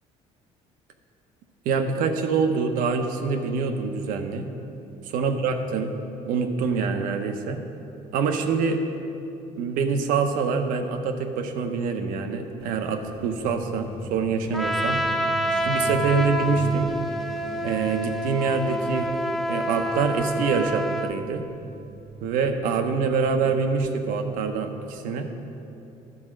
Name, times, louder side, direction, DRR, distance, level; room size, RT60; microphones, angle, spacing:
voice 1, 1.6-4.5 5.1-6.0 6.2-7.6 8.1-8.8 9.6-15.1 15.5-16.9 17.6-19.1 19.5-21.4 22.2-25.3, right 5 dB, 80° right, 6 dB, 0.8 m, -25 dB
Truck, 12.6-24.9, right 5 dB, 45° right, 0.5 m, -42 dB
Trumpet, 14.5-21.2, equal, ahead, 0.5 m, -27 dB
12.0 x 4.3 x 6.1 m, 2.8 s
cardioid pair, 100°, 14 cm